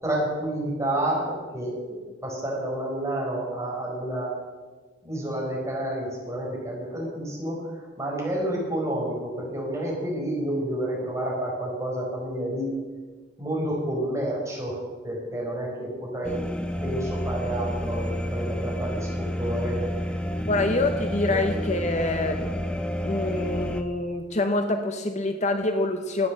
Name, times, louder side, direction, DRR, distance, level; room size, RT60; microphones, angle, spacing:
voice 1, 0.0-4.3 5.0-12.8 13.4-16.4 16.8-20.6 21.3-21.4, right 1 dB, 15° right, -4 dB, 4.6 m, -30 dB
sound 1, 16.2-23.8, equal, 5° left, 0.8 m, -30 dB
voice 2, 20.5-22.5 23.0-26.3, left 2 dB, 40° left, 6 dB, 0.8 m, -26 dB
12.0 x 9.4 x 7.4 m, 1.4 s
head